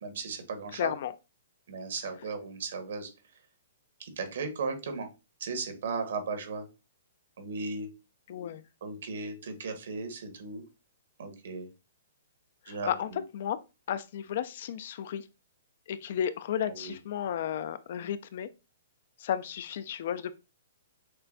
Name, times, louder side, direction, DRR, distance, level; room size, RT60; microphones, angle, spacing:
voice 1, 0.0-0.9 1.7-3.1 4.0-5.1 5.4-6.7 7.4-7.9 8.8-10.6 11.2-11.7 12.7-13.2 16.7-16.9, right 4 dB, 70° right, 1.3 m, -36 dB
voice 2, 0.8-1.1 8.3-8.6 12.7-13.6 13.9-15.3 15.9-18.5 19.2-20.3, left 9 dB, 50° left, 0.3 m, -33 dB
6.5 x 2.2 x 2.6 m
hypercardioid pair, 160°, 0 cm